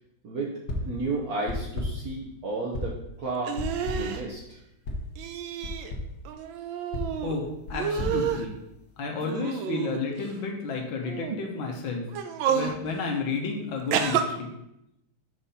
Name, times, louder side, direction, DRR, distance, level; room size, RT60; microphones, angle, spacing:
sound 1, 0.7-1.0 1.5-2.1 2.7-3.1 3.6-4.2 4.9-5.1 5.6-6.2 6.9-9.0, left 1 dB, 60° left, 1.6 m, -34 dB
voice 1, 0.8-3.6 3.8-4.6, right 3 dB, 55° right, -4 dB, 1.3 m, -32 dB
sound 2, 3.4-4.2 5.2-5.9 6.2-7.3 7.7-8.5 9.2-10.3 11.0-11.4 12.1-12.8 13.9-14.2, right 8 dB, 85° right, 1.4 m, -29 dB
voice 2, 7.2-8.5 9.0-12.1 12.5-14.5, left 4 dB, 85° left, 1 dB, 1.7 m, -31 dB
6.2 x 5.3 x 4.2 m, 0.84 s
omnidirectional pair, 2.1 m